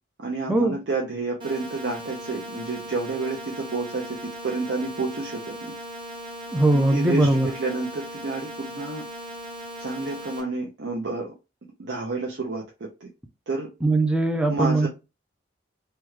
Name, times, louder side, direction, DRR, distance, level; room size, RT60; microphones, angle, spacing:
voice 1, 0.2-5.7 6.7-9.1 9.8-11.3 11.8-13.1 13.5-13.7 14.5-14.9, right 3 dB, 70° right, 0.6 m, -30 dB
sound 1, 1.4-10.4, right 1 dB, 25° right, 0.9 m, -38 dB
voice 2, 6.5-7.5 13.8-14.9, right 2 dB, 5° right, 0.4 m, -20 dB
3.4 x 2.2 x 3.0 m
head